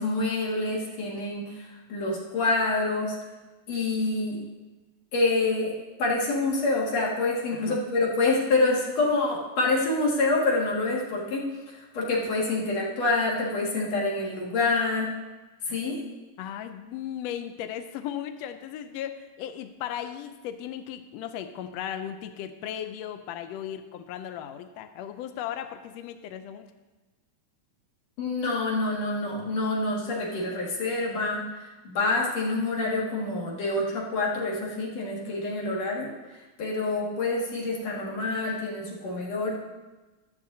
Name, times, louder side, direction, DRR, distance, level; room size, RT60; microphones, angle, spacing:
voice 1, 0.0-3.2 3.7-4.4 5.1-5.7 6.0-15.1 15.6-16.0 28.2-39.6, left 2 dB, 65° left, -4 dB, 3.1 m, -27 dB
voice 2, 16.4-26.7, left 10 dB, 80° left, 8 dB, 1.5 m, -36 dB
14.0 x 12.0 x 2.7 m, 1.2 s
omnidirectional pair, 3.4 m